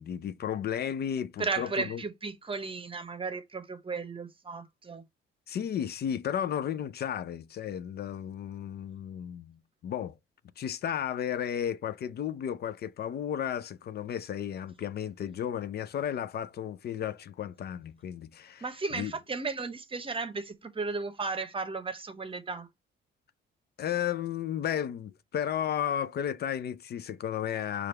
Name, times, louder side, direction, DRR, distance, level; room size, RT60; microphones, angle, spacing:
voice 1, 0.0-2.0 5.5-10.2 10.6-18.7 18.9-19.1 23.8-27.9, left 9 dB, 55° left, 0.5 m, -33 dB
voice 2, 1.4-5.0 18.6-22.7, right 4 dB, 25° right, 0.8 m, -35 dB
4.9 x 2.5 x 4.3 m
cardioid pair, 90°, 20 cm